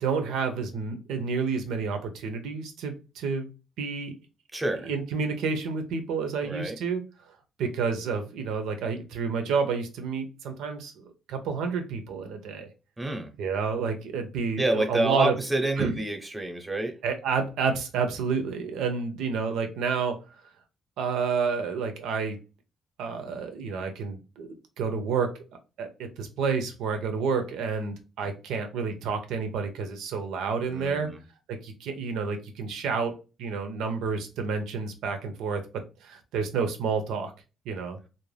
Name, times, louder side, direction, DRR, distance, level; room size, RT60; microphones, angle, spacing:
voice 1, 0.0-3.5 3.8-4.1 4.7-7.0 7.6-12.7 13.4-15.4 15.8-16.0 17.0-20.2 21.0-22.4 23.0-24.5 24.8-25.3 25.8-31.1 31.5-37.3 37.7-38.0, right 5 dB, 90° right, 6 dB, 0.6 m, -29 dB
voice 2, 4.5-4.9 6.4-6.8 13.0-13.3 14.6-17.0 30.7-31.2, right 2 dB, 15° right, 5 dB, 0.7 m, -28 dB
2.5 x 2.1 x 3.2 m, 0.31 s
cardioid pair, 90°, 0 cm